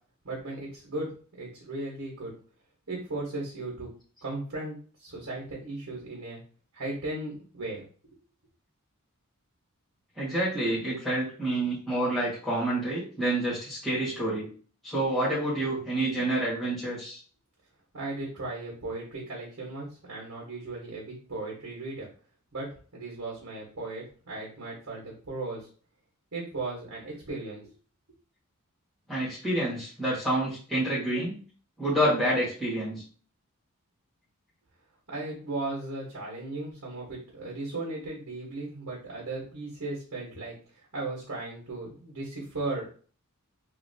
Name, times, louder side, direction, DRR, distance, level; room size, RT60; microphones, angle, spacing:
voice 1, 0.2-2.3 2.9-3.9 4.2-6.4 6.7-7.8 17.9-22.1 22.5-22.7 22.9-25.7 26.3-27.7 35.1-40.5 40.9-42.9, right 2 dB, 65° right, -4 dB, 1.2 m, -36 dB
voice 2, 10.2-14.5 14.8-17.2 29.1-31.4 31.8-33.0, right 1 dB, ahead, -10 dB, 1.6 m, -28 dB
3.0 x 2.7 x 2.7 m, 0.40 s
head